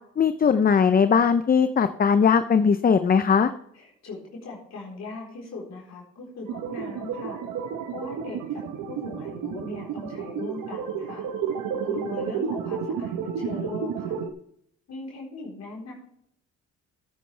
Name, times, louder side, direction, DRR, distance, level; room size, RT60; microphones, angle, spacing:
voice 1, 0.2-3.5, left 6 dB, 30° left, 11 dB, 0.6 m, -19 dB
voice 2, 3.7-7.4 7.9-11.3 11.8-14.2 14.9-15.9, left 3 dB, 60° left, -3 dB, 4.1 m, -39 dB
sound 1, 6.5-14.3, right 7 dB, 90° right, 1.2 m, -31 dB
15.0 x 9.3 x 3.3 m, 0.71 s
cardioid pair, 90°, 30 cm